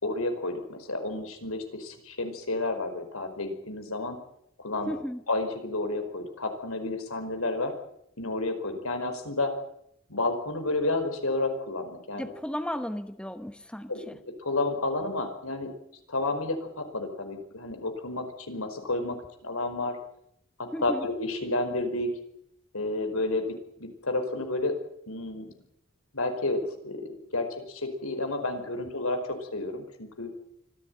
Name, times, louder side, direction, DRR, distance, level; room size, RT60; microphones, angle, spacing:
voice 1, 0.0-4.2 4.6-4.9 5.3-7.7 8.2-9.5 10.1-12.3 13.9-15.7 16.1-20.0 20.6-22.1 22.7-24.7 25.1-25.5 26.1-30.3, left 2 dB, 85° left, 7 dB, 5.0 m, -31 dB
voice 2, 4.9-5.2 12.1-14.2 20.7-21.0, equal, 5° left, 9 dB, 1.0 m, -35 dB
25.0 x 16.0 x 9.2 m, 0.75 s
head